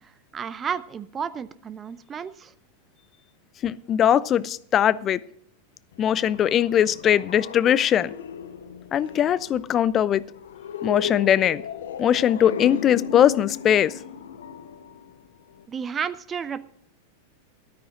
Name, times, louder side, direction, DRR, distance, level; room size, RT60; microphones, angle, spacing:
voice 1, 0.0-2.5 15.7-16.6, right 7 dB, 20° right, 0.6 m, -32 dB
voice 2, 3.6-5.2 6.0-8.1 8.9-10.2 10.8-11.6 12.0-13.9, left 10 dB, 30° left, 0.5 m, -20 dB
sound 1, 5.9-15.7, left 7 dB, 60° left, 1.0 m, -36 dB
13.5 x 13.0 x 3.8 m
figure-of-eight pair, 90°, 0 cm